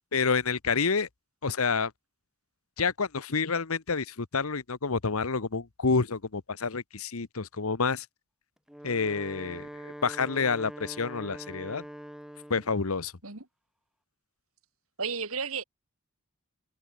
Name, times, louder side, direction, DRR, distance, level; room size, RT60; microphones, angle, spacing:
voice 1, 0.1-1.1 1.4-1.9 2.8-8.1 8.8-11.8 12.5-13.1, left 4 dB, 90° left, 1.1 m, -28 dB
Wind instrument woodwind instrument, 8.6-12.8, equal, ahead, 0.7 m, -43 dB
voice 2, 15.0-15.6, right 5 dB, 85° right, 3.6 m, -32 dB
head